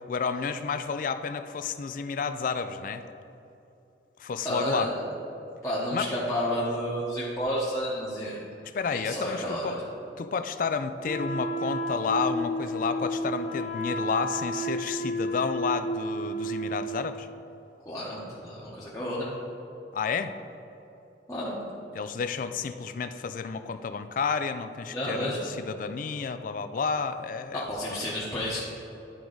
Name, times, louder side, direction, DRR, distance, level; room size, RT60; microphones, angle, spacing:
voice 1, 0.1-3.0 4.2-4.9 5.9-6.1 8.7-9.8 10.2-17.3 19.9-20.3 21.9-27.6, left 5 dB, 45° left, 10 dB, 0.3 m, -31 dB
voice 2, 4.4-4.9 5.6-8.4 8.9-9.8 17.8-19.3 21.3-21.6 24.9-25.5 27.5-28.7, equal, 15° left, -8 dB, 0.9 m, -31 dB
Wind instrument woodwind instrument, 11.0-17.0, equal, 85° left, 1.1 m, -31 dB
10.5 x 4.6 x 3.9 m, 2.8 s
head